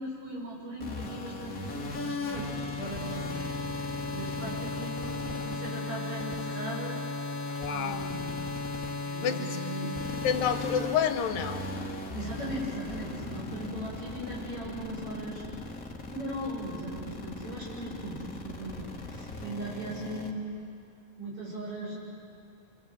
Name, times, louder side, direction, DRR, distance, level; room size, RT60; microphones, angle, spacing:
voice 1, 0.0-3.5 4.1-7.0 7.7-8.4 9.1-10.0 12.0-15.4 16.1-20.5 21.2-22.0, right 1 dB, 40° right, -4 dB, 8.5 m, -38 dB
sound 1, 0.8-20.3, left 3 dB, 30° left, 1.8 m, -36 dB
voice 2, 7.6-8.1 9.2-9.4 10.2-11.6, left 8 dB, 75° left, 7 dB, 2.6 m, -28 dB
26.5 x 26.0 x 8.0 m, 2.3 s
omnidirectional pair, 4.1 m